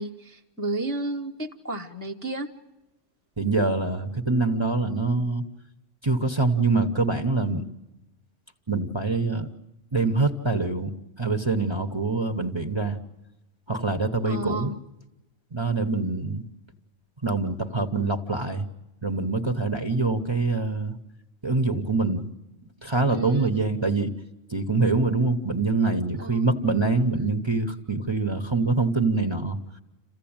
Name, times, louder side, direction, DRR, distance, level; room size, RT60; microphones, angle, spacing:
voice 1, 0.0-2.5 14.2-14.8 23.1-23.6 26.2-26.4, right 2 dB, 10° left, 2 dB, 0.9 m, -32 dB
voice 2, 3.4-5.5 6.0-7.7 8.7-9.5 9.9-10.9 11.2-13.0 13.7-14.7 15.5-16.4 17.2-18.7 19.0-21.0 21.4-22.3 22.8-24.2 24.5-29.6, right 3 dB, 20° right, 7 dB, 1.0 m, -25 dB
27.5 x 15.5 x 8.8 m, 1.0 s
omnidirectional pair, 1.4 m